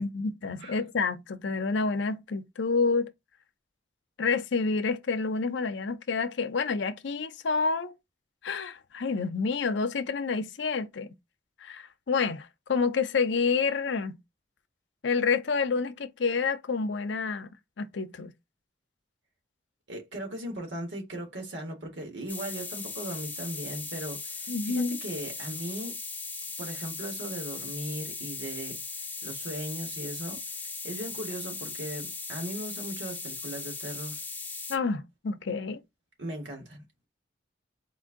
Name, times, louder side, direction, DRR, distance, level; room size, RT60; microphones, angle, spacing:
voice 1, 0.0-3.1 4.2-7.9 8.4-11.1 11.6-14.2 15.0-17.5 17.8-18.3 24.5-25.0 34.7-35.8, left 4 dB, 75° left, 0.6 m, -28 dB
voice 2, 19.9-26.0 26.6-30.4 30.8-34.2 36.2-37.1, right 1 dB, 75° right, 1.5 m, -38 dB
sound 1, 22.3-34.8, left 4 dB, 10° left, 0.5 m, -38 dB
4.3 x 2.6 x 3.7 m
head